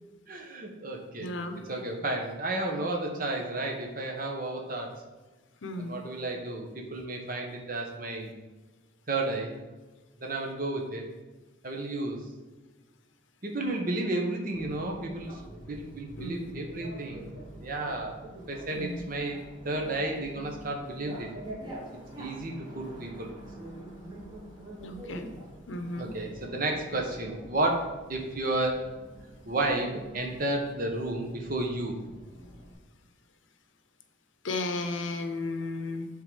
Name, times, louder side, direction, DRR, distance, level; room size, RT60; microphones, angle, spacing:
voice 1, 0.3-1.3 1.7-4.9 5.8-8.3 9.1-9.5 10.2-11.0 11.6-12.2 13.4-17.3 17.6-18.2 18.5-21.3 22.2-23.3 26.0-28.9 29.5-31.9, right 2 dB, 45° right, 2 dB, 1.0 m, -32 dB
voice 2, 1.2-1.6 5.6-5.9 16.2-16.5 18.7-19.0 24.8-25.3 25.7-26.1 34.4-36.1, left 2 dB, 75° left, 7 dB, 0.7 m, -34 dB
Bicycle, 14.5-32.7, right 1 dB, 20° right, 1.5 m, -46 dB
7.1 x 3.8 x 4.8 m, 1.2 s
head